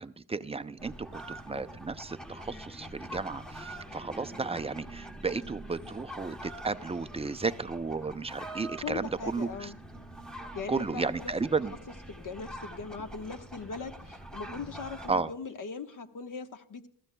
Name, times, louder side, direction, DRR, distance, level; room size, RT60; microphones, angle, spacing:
voice 1, 0.0-9.7 10.7-11.7 15.1-15.3, right 4 dB, 15° right, 11 dB, 0.4 m, -33 dB
sound 1, 0.8-15.1, right 1 dB, ahead, 0.9 m, -45 dB
voice 2, 8.8-9.8 10.5-11.3 11.7-11.8 12.1-16.9, left 5 dB, 45° left, 8 dB, 1.2 m, -40 dB
20.5 x 14.0 x 2.2 m, 0.62 s
cardioid pair, 100°, 46 cm